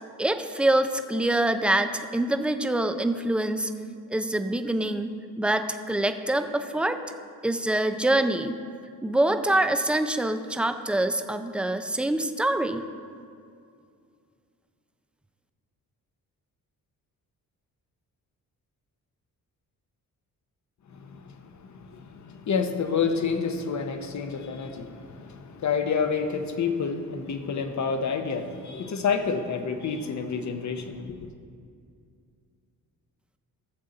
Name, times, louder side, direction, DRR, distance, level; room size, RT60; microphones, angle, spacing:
voice 1, 0.2-3.7 4.1-7.0 7.4-8.6 9.0-12.9, right 1 dB, 5° right, 8 dB, 0.4 m, -25 dB
voice 2, 20.9-31.3, left 5 dB, 50° left, 7 dB, 0.9 m, -29 dB
13.0 x 7.2 x 3.9 m, 2.3 s
cardioid pair, 100°, 36 cm